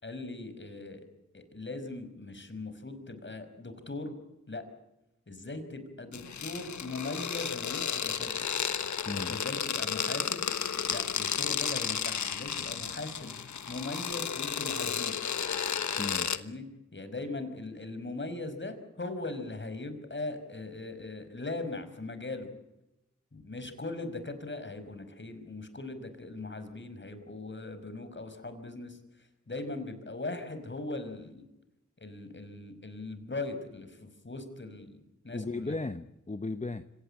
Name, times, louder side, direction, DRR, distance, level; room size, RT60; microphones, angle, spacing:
voice 1, 0.0-1.1 1.3-4.1 4.5-4.6 5.3-8.5 9.1-10.4 10.9-13.3 13.7-15.2 16.3-16.6 16.9-22.5 23.3-29.0 29.5-31.5 32.0-35.0 35.2-35.7, left 2 dB, 40° left, 10 dB, 5.5 m, -39 dB
sound 1, 6.1-16.4, left 7 dB, 75° left, 1.3 m, -33 dB
voice 2, 9.0-9.4 16.0-16.3 35.3-36.8, left 3 dB, 25° left, 11 dB, 1.1 m, -36 dB
25.5 x 18.0 x 8.8 m, 0.90 s
cardioid pair, 40°, 29 cm